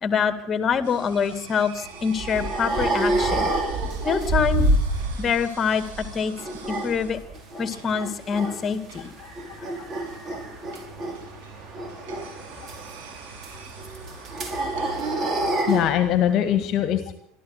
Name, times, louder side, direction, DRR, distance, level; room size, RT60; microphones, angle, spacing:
voice 1, 0.0-3.5 4.0-4.7 5.2-6.3 6.7-7.2 7.6-9.1, left 6 dB, 30° left, 11 dB, 2.2 m, -25 dB
sound 1, 0.8-16.6, right 5 dB, 60° right, 6.7 m, -45 dB
sound 2, 1.8-5.4 5.7-7.7 8.0-8.6 9.0-15.9, right 1 dB, 30° right, 5.6 m, -27 dB
voice 2, 9.2-10.1 10.3-10.4 10.7-10.8 12.6-12.7 13.5-13.6 14.9-15.0 15.7-17.1, left 11 dB, 45° left, 10 dB, 1.7 m, -25 dB
25.0 x 13.5 x 8.1 m, 0.72 s
figure-of-eight pair, 75°, 0 cm